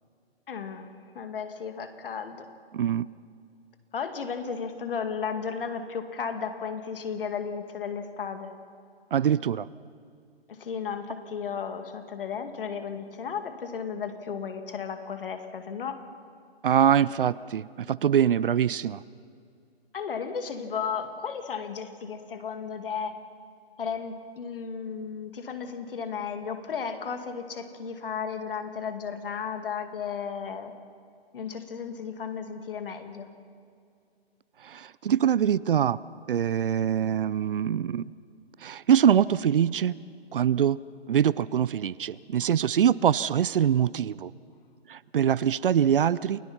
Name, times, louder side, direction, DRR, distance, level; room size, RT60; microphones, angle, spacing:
voice 1, 0.5-2.4 3.9-8.5 10.5-16.0 19.9-23.2 23.8-30.8 31.3-33.3, left 6 dB, 55° left, 8 dB, 2.2 m, -34 dB
voice 2, 2.7-3.1 9.1-9.7 16.6-19.0 34.7-36.0 36.3-38.0 38.6-39.9 40.3-40.8 41.1-44.3 44.9-46.4, right 9 dB, 55° right, 20 dB, 0.5 m, -23 dB
29.0 x 18.0 x 5.6 m, 2.3 s
figure-of-eight pair, 135°, 32 cm